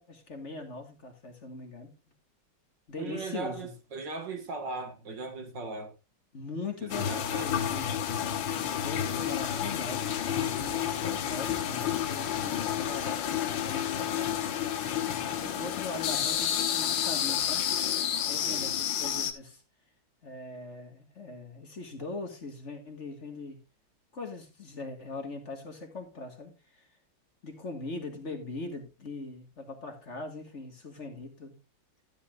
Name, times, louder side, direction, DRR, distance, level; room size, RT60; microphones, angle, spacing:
voice 1, 0.0-1.9 2.9-3.7 6.3-7.9 8.6-14.4 15.4-17.7 18.2-19.6 20.2-23.6 24.1-26.8 27.4-31.6, left 3 dB, 40° left, 1.9 m, -41 dB
voice 2, 3.0-5.9 6.8-7.5 16.2-16.3 18.3-18.8, right 3 dB, 70° right, 2.5 m, -38 dB
sound 1, 6.9-19.3, left 9 dB, 80° left, 1.7 m, -30 dB
12.5 x 11.0 x 2.4 m
omnidirectional pair, 2.0 m